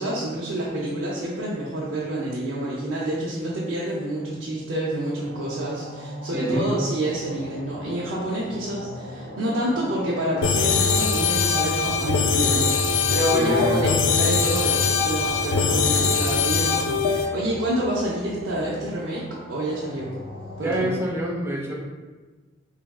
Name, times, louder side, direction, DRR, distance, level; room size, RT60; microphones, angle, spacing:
voice 1, 0.0-20.2 20.6-20.9, right 1 dB, 80° right, -7 dB, 0.6 m, -28 dB
sound 1, 5.2-20.9, equal, 45° left, 0.7 m, -39 dB
voice 2, 6.3-6.7 13.3-13.8 20.6-21.7, right 1 dB, 15° right, -4 dB, 0.5 m, -26 dB
sound 2, 10.4-17.3, left 5 dB, 85° left, 0.3 m, -22 dB
3.5 x 3.3 x 2.3 m, 1.3 s
head